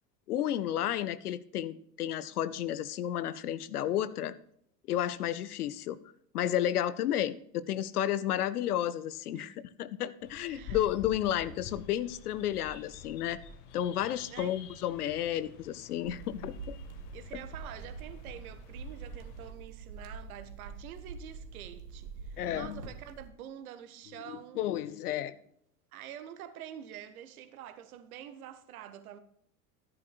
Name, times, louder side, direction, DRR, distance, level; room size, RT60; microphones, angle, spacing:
voice 1, 0.3-4.3 4.9-6.0 6.3-9.5 9.8-13.4 13.7-16.8 22.4-22.8 24.3-25.4, left 11 dB, 65° left, 0.8 m, -32 dB
sound 1, 10.2-19.5, left 5 dB, 50° left, 1.5 m, -49 dB
voice 2, 10.4-10.9 14.3-14.5 17.1-24.6 25.9-29.2, right 10 dB, 60° right, 1.3 m, -47 dB
sound 2, 16.0-23.3, right 4 dB, 80° right, 1.5 m, -45 dB
13.5 x 11.0 x 2.3 m
figure-of-eight pair, 75°, 49 cm